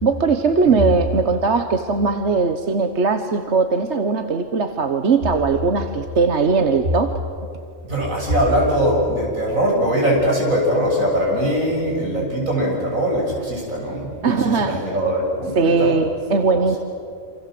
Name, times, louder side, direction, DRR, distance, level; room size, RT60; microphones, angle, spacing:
voice 1, 0.0-7.2 14.2-14.8 15.5-16.8, right 4 dB, 55° right, 8 dB, 1.4 m, -19 dB
voice 2, 7.8-16.0 16.5-16.8, equal, 75° right, -2 dB, 7.6 m, -21 dB
28.0 x 27.0 x 7.8 m, 2.4 s
omnidirectional pair, 1.4 m